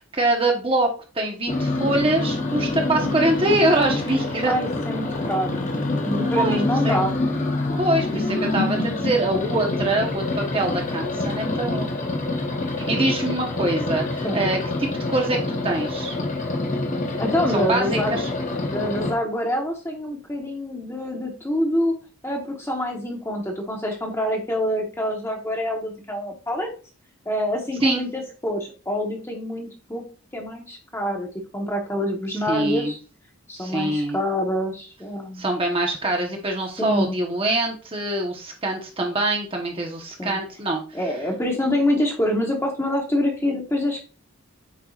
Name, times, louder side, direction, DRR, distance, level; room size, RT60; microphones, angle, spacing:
voice 1, 0.1-0.9 1.1-4.5 6.3-7.0 7.8-11.9 12.8-16.2 17.5-18.3 27.8-28.0 32.5-32.9 33.6-34.2 35.4-41.0, right 2 dB, 25° right, 2 dB, 1.0 m, -24 dB
sound 1, 1.5-19.1, left 2 dB, 35° left, 1.0 m, -26 dB
voice 2, 4.5-5.7 6.0-7.1 14.2-14.4 17.2-18.2 18.7-21.9 22.2-26.7 27.2-30.0 30.3-31.3 31.5-33.0 33.5-35.4 36.8-37.2 40.2-40.4 40.9-44.0, left 1 dB, 10° left, 1 dB, 1.1 m, -26 dB
8.4 x 4.7 x 2.4 m, 0.36 s
head